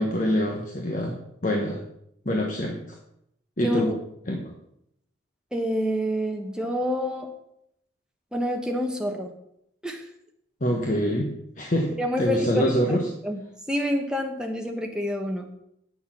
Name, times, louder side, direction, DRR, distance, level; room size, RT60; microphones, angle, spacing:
voice 1, 0.0-1.8 2.2-2.8 3.6-3.9 4.3-4.5 10.6-11.9 12.2-13.1, equal, 40° left, 0 dB, 1.2 m, -25 dB
voice 2, 3.6-4.0 5.5-7.3 8.3-9.3 9.8-10.0 12.0-12.7 13.2-15.5, equal, 5° right, 2 dB, 1.1 m, -27 dB
9.5 x 6.5 x 6.0 m, 0.77 s
head